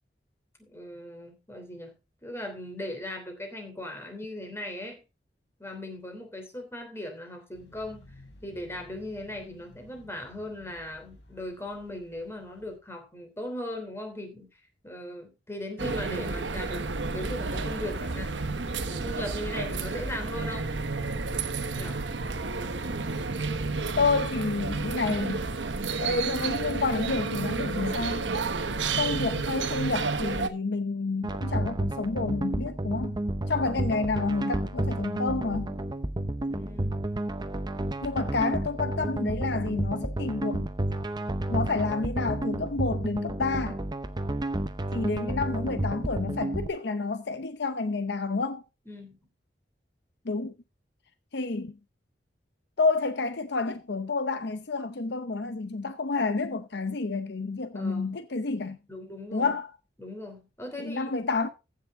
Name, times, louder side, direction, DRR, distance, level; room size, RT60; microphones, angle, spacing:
voice 1, 0.7-1.9 2.2-5.0 5.6-8.0 8.4-18.3 18.9-20.7 21.8-22.0 36.5-37.0 48.9-49.2 57.7-58.1 58.9-59.5 60.0-61.1, left 1 dB, 15° left, 3.1 m, -38 dB
sound 1, 7.5-12.8, left 1 dB, 85° left, 3.3 m, -54 dB
sound 2, 15.8-30.5, right 4 dB, 90° right, 1.2 m, -31 dB
voice 2, 24.0-25.4 26.0-28.3 28.9-33.2 33.5-35.8 38.0-40.7 41.5-43.8 44.9-48.6 50.2-50.5 51.3-51.8 52.8-58.8 59.3-59.7 60.8-61.5, left 3 dB, 65° left, 0.8 m, -29 dB
sound 3, 31.2-46.7, right 1 dB, 25° right, 0.7 m, -31 dB
15.0 x 6.6 x 3.6 m
head